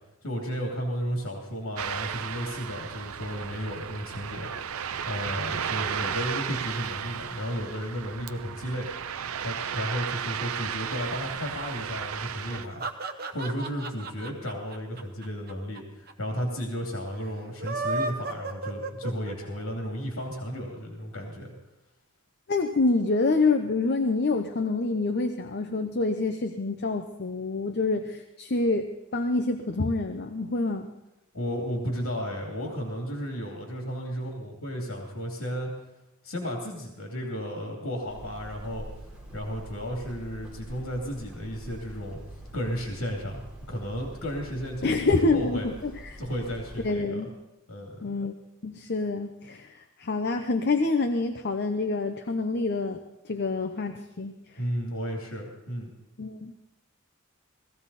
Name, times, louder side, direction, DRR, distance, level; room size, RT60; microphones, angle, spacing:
voice 1, 0.2-8.9 9.4-12.8 13.3-21.5 31.3-35.7 36.2-38.9 39.3-42.2 42.5-43.4 43.7-45.7 46.2-47.2 47.7-48.1 54.6-55.9, equal, 90° left, 0 dB, 2.7 m, -33 dB
Ocean, 1.8-12.7, right 8 dB, 85° right, 0.6 m, -34 dB
sound 1, 12.4-15.8 16.1-16.2 16.4-16.5 17.4-19.6, right 3 dB, 45° right, 1.0 m, -33 dB
voice 2, 22.5-28.9 29.1-30.9 44.8-46.2 46.8-47.3 48.0-48.3 48.6-54.3 56.2-56.5, left 3 dB, 50° left, 6 dB, 0.8 m, -27 dB
Hammer, 38.1-46.9, right 1 dB, 5° right, 4.1 m, -45 dB
18.0 x 14.5 x 4.2 m, 0.93 s
head